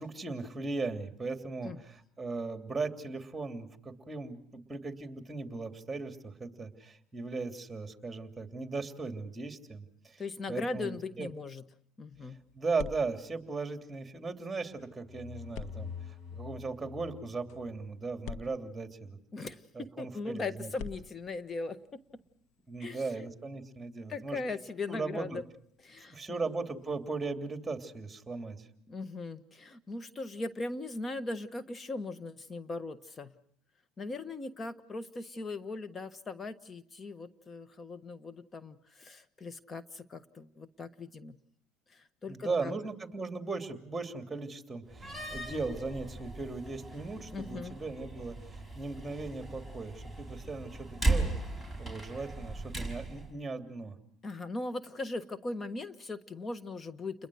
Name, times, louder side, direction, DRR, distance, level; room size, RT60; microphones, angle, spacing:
voice 1, 0.0-10.2 10.5-11.3 12.5-19.2 19.7-20.7 22.7-24.4 24.9-25.4 26.1-28.7 42.3-51.3 51.8-53.9, right 3 dB, 15° right, 6 dB, 2.9 m, -38 dB
voice 2, 10.2-11.6 12.0-12.4 19.3-22.0 22.8-23.1 24.1-25.4 25.8-26.4 28.9-33.3 34.0-41.4 41.9-42.7 47.3-47.8 54.2-57.3, left 3 dB, 30° left, 13 dB, 1.4 m, -39 dB
sound 1, 12.1-14.4 15.5-19.5 20.7-27.4, left 5 dB, 70° left, 1.8 m, -50 dB
sound 2, 14.7-18.4, left 7 dB, 45° left, 6.3 m, -46 dB
Slam, 44.9-53.3, right 2 dB, 10° left, 5.3 m, -37 dB
29.5 x 21.5 x 6.4 m, 0.65 s
supercardioid pair, 90°, 0 cm